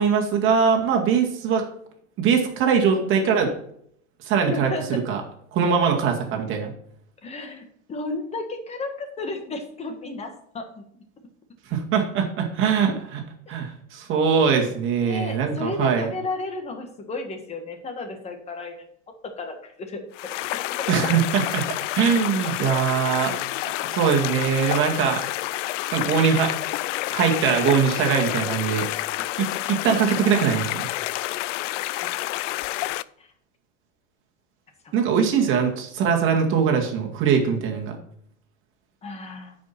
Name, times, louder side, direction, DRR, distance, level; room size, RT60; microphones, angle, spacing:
voice 1, 0.0-1.6 2.2-3.5 4.2-5.2 5.5-6.7 11.7-13.2 13.5-16.1 20.9-21.7 21.9-23.4 23.9-25.2 25.9-26.5 27.1-28.9 29.4-30.9 34.9-37.9, right 6 dB, 35° right, 1 dB, 2.2 m, -22 dB
voice 2, 4.5-5.0 7.2-10.8 15.0-18.7 19.4-20.0 23.3-23.4 32.0-32.1 32.8-32.9 33.2-33.3 34.8-34.9 39.0-39.6, left 3 dB, 15° left, 5 dB, 1.5 m, -33 dB
sound 1, 20.1-33.0, left 17 dB, 85° left, 0.5 m, -29 dB
9.4 x 5.4 x 5.9 m, 0.68 s
supercardioid pair, 150°, 36 cm